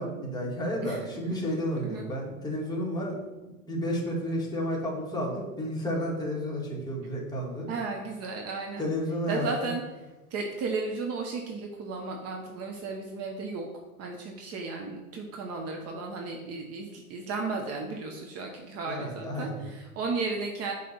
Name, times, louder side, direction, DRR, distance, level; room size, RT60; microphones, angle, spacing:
voice 1, 0.0-3.2 3.7-7.7 8.8-9.7 18.9-19.6, equal, 10° left, -4 dB, 1.9 m, -31 dB
voice 2, 7.7-8.9 9.3-9.8 10.3-13.7 14.0-20.7, right 3 dB, 35° right, 1 dB, 0.9 m, -34 dB
5.9 x 3.3 x 5.6 m, 1.1 s
hypercardioid pair, 105°, 42 cm